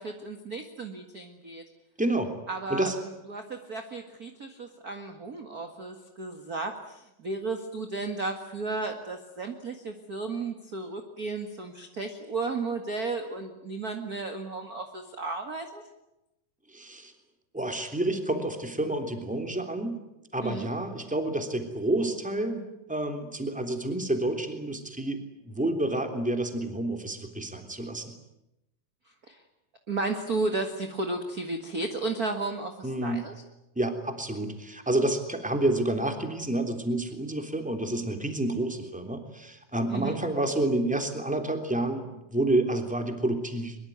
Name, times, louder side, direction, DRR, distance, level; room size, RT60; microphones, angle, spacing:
voice 1, 0.0-1.6 2.5-15.8 20.4-20.7 29.3-29.4 29.9-33.3 39.9-40.2, right 3 dB, 35° right, 5 dB, 1.9 m, -34 dB
voice 2, 2.0-2.3 2.7-2.9 16.7-17.1 17.5-20.0 20.3-22.6 22.9-28.1 32.8-33.2 33.7-43.8, right 1 dB, ahead, 5 dB, 2.8 m, -29 dB
23.5 x 23.0 x 9.5 m, 0.88 s
omnidirectional pair, 3.8 m